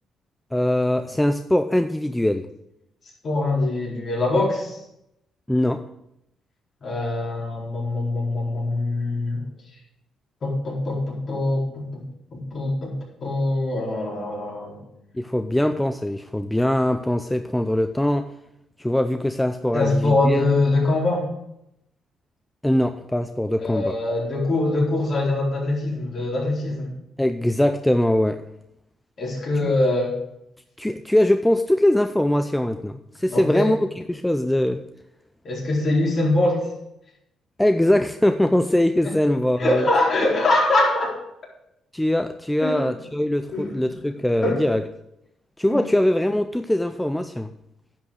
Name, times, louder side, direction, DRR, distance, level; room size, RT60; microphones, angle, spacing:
voice 1, 0.5-2.5 5.5-5.8 15.1-18.3 18.8-20.4 22.6-24.0 27.2-28.4 29.6-29.7 30.8-33.8 34.1-34.8 37.6-39.9 41.9-44.8 45.6-47.5, left 1 dB, 5° left, 8 dB, 0.5 m, -22 dB
voice 2, 3.2-4.8 6.8-9.4 10.4-12.0 12.3-12.9 13.2-14.8 19.7-21.3 23.6-26.9 29.2-30.2 33.3-33.7 35.4-36.7 39.0-39.1 39.6-41.2 42.6-42.9 43.5-43.9 44.4-44.6 45.7-45.8, left 2 dB, 50° left, -3 dB, 4.2 m, -23 dB
10.5 x 6.0 x 6.4 m, 0.80 s
cardioid pair, 90°, 0 cm